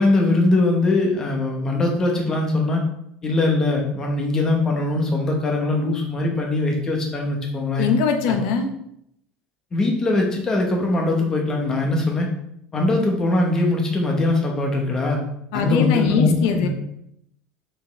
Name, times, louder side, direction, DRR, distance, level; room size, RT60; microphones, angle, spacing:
voice 1, 0.0-2.8 3.2-7.9 8.3-8.4 9.7-12.3 12.7-15.2 15.5-16.7, left 2 dB, 15° left, 1 dB, 1.2 m, -21 dB
voice 2, 7.8-8.7 15.5-16.7, left 6 dB, 80° left, 5 dB, 1.0 m, -21 dB
6.0 x 5.2 x 3.4 m, 0.76 s
cardioid pair, 170°, 4 cm